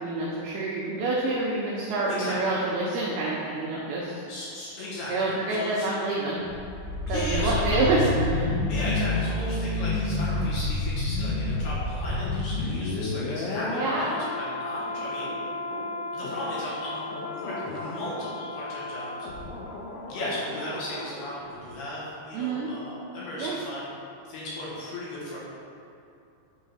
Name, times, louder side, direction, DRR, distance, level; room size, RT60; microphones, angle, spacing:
voice 1, 0.0-4.1 5.1-6.4 7.1-8.5 13.7-14.0 22.3-22.7 23.4-23.6, right 2 dB, 80° right, -5 dB, 2.3 m, -27 dB
voice 2, 2.1-2.4 4.3-5.9 7.1-8.1 8.7-15.3 16.1-17.0 17.3-19.3 20.1-23.8 24.3-25.4, left 1 dB, 65° left, -8 dB, 3.3 m, -35 dB
sound 1, 6.4-21.4 21.6-21.8, left 2 dB, 90° left, 3.0 m, -30 dB
sound 2, 15.0-16.0 17.4-18.2 20.3-21.1, right 2 dB, 60° right, 2.8 m, -43 dB
9.5 x 3.9 x 5.6 m, 2.7 s
omnidirectional pair, 5.4 m